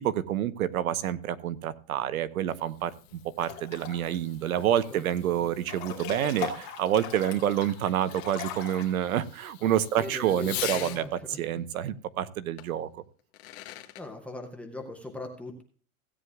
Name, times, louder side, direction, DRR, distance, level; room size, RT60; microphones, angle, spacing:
voice 1, 0.0-13.0, right 11 dB, 80° right, 14 dB, 1.0 m, -28 dB
Fireworks, 2.2-11.0 12.6-12.7 13.2-14.0, left 14 dB, 50° left, 1.6 m, -43 dB
Breathing / Bathtub (filling or washing) / Splash splatter, 3.4-4.2 4.5-5.2 5.6-8.9, left 9 dB, 30° left, 2.7 m, -39 dB
voice 2, 10.0-11.4 14.0-15.6, left 2 dB, 5° left, 2 dB, 0.5 m, -40 dB
16.5 x 9.4 x 2.3 m, 0.40 s
supercardioid pair, 165°, 42 cm